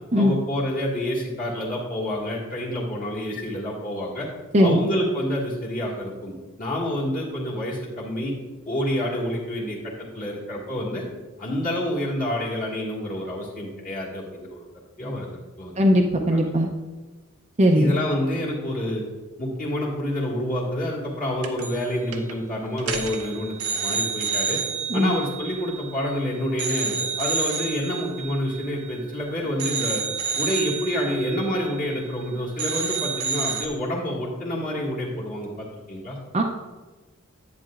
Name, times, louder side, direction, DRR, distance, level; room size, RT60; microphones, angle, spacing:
voice 1, 0.2-4.3 4.6-8.3 8.7-11.0 11.4-14.6 15.0-15.9 16.3-16.4 17.7-19.0 19.4-24.6 24.9-30.0 30.4-36.2, equal, 40° left, -6 dB, 1.8 m, -28 dB
voice 2, 15.8-16.7 17.6-17.9 24.9-25.1 36.3-36.4, equal, 30° right, 1 dB, 0.6 m, -18 dB
sound 1, 21.4-21.9 22.1-22.3 22.8-26.2 26.6-29.2 29.6-32.3 32.6-33.7, right 5 dB, 90° right, 0.9 m, -29 dB
10.5 x 8.7 x 2.5 m, 1.2 s
head